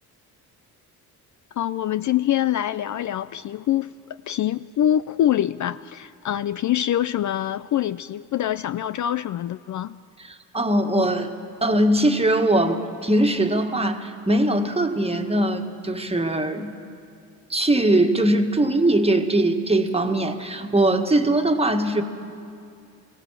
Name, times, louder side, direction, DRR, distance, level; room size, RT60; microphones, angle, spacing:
voice 1, 1.6-10.0, left 11 dB, 50° left, 0.4 m, -25 dB
voice 2, 10.3-11.3 11.6-16.7 17.5-22.0, right 1 dB, 15° right, 1.7 m, -21 dB
21.5 x 16.5 x 7.5 m
cardioid pair, 70°, 38 cm